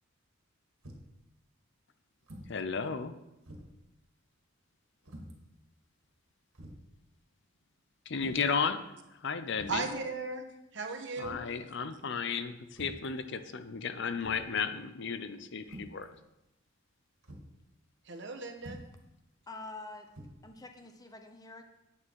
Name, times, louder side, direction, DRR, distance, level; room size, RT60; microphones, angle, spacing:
sound 1, 0.8-1.2 2.2-2.6 3.0-3.1 3.4-3.8 5.0-5.4 6.1-6.2 6.5-6.9 8.1-8.6 9.5-9.9 11.2-11.5 12.7-13.1 14.2-14.6 15.6-16.0 17.2-17.5 18.6-19.0 20.1-20.3, equal, 90° right, 2.1 m, -48 dB
voice 1, 2.5-3.1 8.1-8.8 9.2-9.9 11.2-16.1, left 5 dB, 55° left, 10 dB, 0.6 m, -34 dB
voice 2, 9.7-10.4 10.7-11.5 18.0-18.8, right 4 dB, 55° right, 4 dB, 1.2 m, -36 dB
voice 3, 19.5-20.1 20.4-21.6, left 2 dB, 15° left, 5 dB, 0.9 m, -46 dB
9.2 x 8.5 x 4.7 m, 0.91 s
head